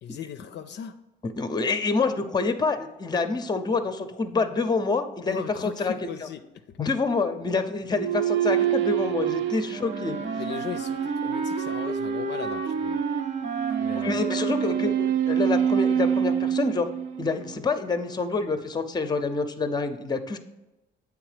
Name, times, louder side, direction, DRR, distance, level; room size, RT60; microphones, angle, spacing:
voice 1, 0.0-0.9 5.3-6.4 10.4-13.0 13.8-14.2, left 8 dB, 60° left, 8 dB, 0.4 m, -37 dB
voice 2, 1.2-6.1 6.8-10.2 13.9-16.9 17.2-20.4, left 4 dB, 20° left, 9 dB, 0.6 m, -27 dB
sound 1, 7.9-17.6, right 9 dB, 75° right, 0.5 m, -27 dB
Wind instrument woodwind instrument, 9.7-15.1, right 3 dB, 35° right, 0.7 m, -32 dB
7.8 x 3.5 x 4.9 m, 1.0 s
cardioid pair, 90°, 20 cm